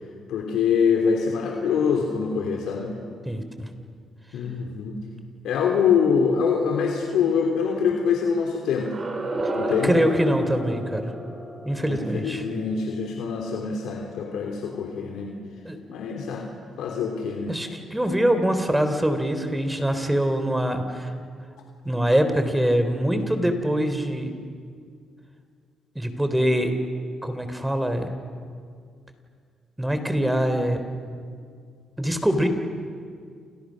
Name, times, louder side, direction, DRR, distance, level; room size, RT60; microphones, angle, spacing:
voice 1, 0.3-2.9 4.3-5.0 5.4-8.9 9.5-10.0 11.8-15.3 15.9-16.4 16.8-17.6, left 6 dB, 80° left, 1 dB, 3.2 m, -24 dB
voice 2, 3.2-3.7 9.6-11.0 11.6-12.4 15.6-15.8 17.5-21.1 21.8-24.3 25.9-26.7 27.2-28.1 29.8-30.8 32.0-32.5, equal, 5° right, 8 dB, 3.5 m, -23 dB
sound 1, 8.8-13.7, right 1 dB, 40° right, 5.7 m, -32 dB
30.0 x 28.5 x 6.4 m, 2.2 s
cardioid pair, 90°, 0 cm